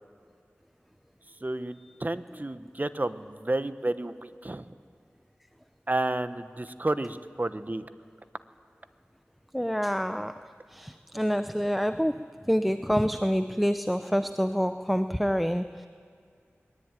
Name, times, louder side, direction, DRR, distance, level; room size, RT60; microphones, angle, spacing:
voice 1, 1.4-4.7 5.9-7.9, right 2 dB, 35° right, 12 dB, 1.0 m, -31 dB
voice 2, 9.5-10.4 10.7-15.9, equal, ahead, 11 dB, 0.6 m, -27 dB
21.5 x 21.0 x 9.0 m, 2.3 s
wide cardioid pair, 40°, 5 cm